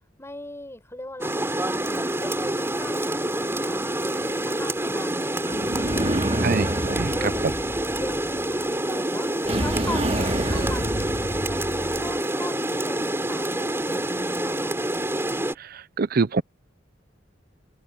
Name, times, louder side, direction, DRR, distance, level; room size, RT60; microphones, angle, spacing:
voice 1, 0.2-6.5 7.1-7.5 8.0-9.3 9.6-11.1 11.4-11.7 11.9-14.8, left 1 dB, 15° left, 5.8 m, -39 dB
Rain, 1.2-15.5, right 1 dB, 15° right, 3.7 m, -27 dB
sound 1, 5.5-8.5 9.4-12.2, right 1 dB, 35° right, 4.8 m, -28 dB
voice 2, 6.4-7.1 16.0-16.4, right 4 dB, 55° right, 0.6 m, -24 dB
open air
head